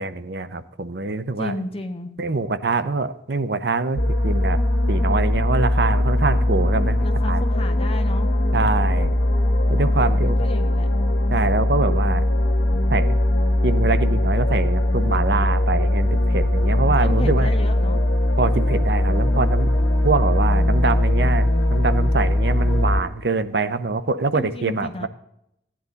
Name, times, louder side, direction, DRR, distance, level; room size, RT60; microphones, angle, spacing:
voice 1, 0.0-1.6 2.2-4.6 4.9-7.4 8.5-9.1 9.7-10.4 11.3-12.2 12.9-13.2 13.6-17.5 18.4-19.7 20.0-25.1, right 3 dB, 65° right, 12 dB, 0.7 m, -24 dB
voice 2, 1.4-2.1 7.0-8.3 10.0-10.9 16.6-18.0 24.3-25.1, left 1 dB, 35° left, 5 dB, 1.4 m, -33 dB
sound 1, 4.0-23.0, left 1 dB, 90° left, 1.6 m, -20 dB
15.5 x 10.5 x 4.0 m, 0.78 s
head